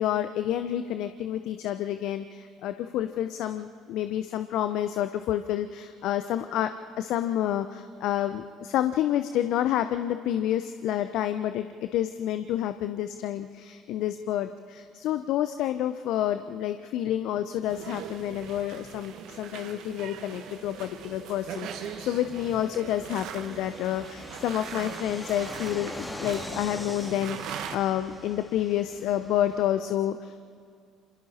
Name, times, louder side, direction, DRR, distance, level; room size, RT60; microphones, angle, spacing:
voice 1, 0.0-6.7 7.0-30.4, left 11 dB, 65° left, 10 dB, 0.7 m, -29 dB
sound 1, 17.7-27.8, right 8 dB, 65° right, 1.5 m, -41 dB
Fixed-wing aircraft airplane, 20.5-29.7, left 1 dB, 10° left, 2.7 m, -44 dB
27.5 x 26.0 x 4.3 m, 2.3 s
hypercardioid pair, 55°, 0 cm